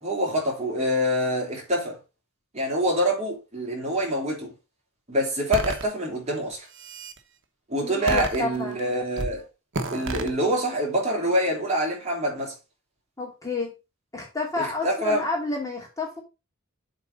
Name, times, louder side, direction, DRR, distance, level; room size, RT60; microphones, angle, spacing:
voice 1, 0.0-2.0 2.5-4.5 5.1-6.6 7.7-9.4 9.9-12.5 14.6-15.2, equal, 30° right, 3.3 m, -25 dB
sound 1, 5.5-5.8 6.5-7.2 8.1-8.8 9.2-9.4 9.7-10.3, right 2 dB, 60° right, 1.2 m, -30 dB
voice 2, 7.8-8.8 13.2-13.7 14.1-16.2, left 3 dB, 15° left, 2.4 m, -30 dB
7.6 x 4.0 x 5.2 m
head